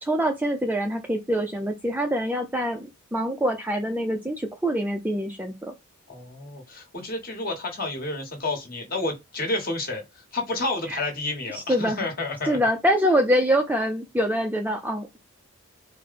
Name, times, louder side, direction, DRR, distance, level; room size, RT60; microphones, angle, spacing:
voice 1, 0.0-5.7 10.9-11.0 11.5-12.1 12.5-15.2, equal, 10° right, 0.4 m, -25 dB
voice 2, 6.1-12.6, left 2 dB, 40° left, 1.5 m, -30 dB
4.5 x 2.1 x 4.1 m
head